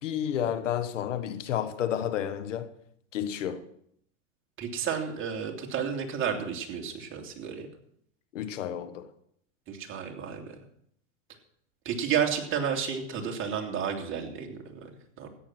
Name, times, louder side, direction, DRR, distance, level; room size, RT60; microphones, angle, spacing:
voice 1, 0.0-2.7 3.1-3.6 8.3-9.1, left 9 dB, 90° left, 1.4 m, -31 dB
voice 2, 4.6-7.7 9.7-10.5 11.8-14.9 15.2-15.3, right 7 dB, 35° right, 2.8 m, -31 dB
14.0 x 9.5 x 6.1 m
hypercardioid pair, 115°, 36 cm